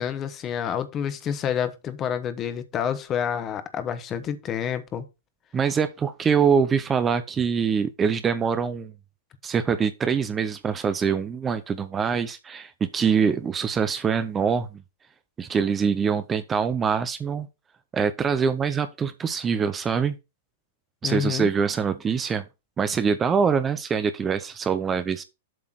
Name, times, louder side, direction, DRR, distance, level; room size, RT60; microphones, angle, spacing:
voice 1, 0.0-5.0 21.0-21.5, left 8 dB, 30° left, 1.2 m, -28 dB
voice 2, 5.5-8.9 9.4-14.8 15.4-17.5 17.9-20.1 21.0-22.4 22.8-25.2, right 6 dB, 20° right, 0.6 m, -24 dB
7.7 x 3.7 x 6.0 m
figure-of-eight pair, 100°, 0 cm